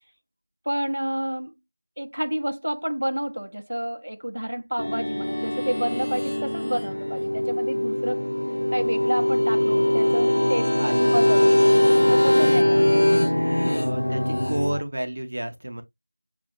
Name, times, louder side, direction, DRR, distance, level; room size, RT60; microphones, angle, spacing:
voice 1, 0.7-1.5 2.0-8.2 8.7-10.7 11.1-13.0, equal, 80° right, 0.6 m, -29 dB
sound 1, 4.8-14.8, left 1 dB, 70° left, 0.7 m, -21 dB
voice 2, 10.8-11.5 12.3-15.8, right 1 dB, 30° right, 0.7 m, -32 dB
6.5 x 2.5 x 2.8 m
figure-of-eight pair, 180°, 0 cm